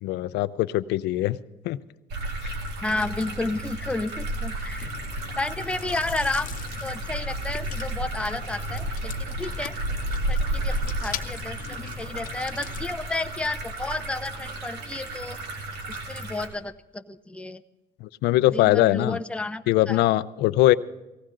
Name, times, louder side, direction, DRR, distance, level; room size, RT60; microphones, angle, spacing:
voice 1, 0.0-1.4 1.7-1.8 2.4-2.5 18.2-19.2 19.7-20.7, left 16 dB, 85° left, 16 dB, 0.5 m, -21 dB
sound 1, 2.1-16.5, right 1 dB, 80° right, 2.1 m, -32 dB
voice 2, 2.8-4.9 5.4-6.5 6.8-9.7 10.3-15.4 15.9-17.6 18.5-20.0, left 2 dB, 5° left, 8 dB, 0.6 m, -32 dB
Chewing mastication, 4.8-13.0, left 8 dB, 55° left, 0.9 m, -40 dB
18.5 x 15.5 x 3.8 m, 1.0 s
cardioid pair, 110°, 17 cm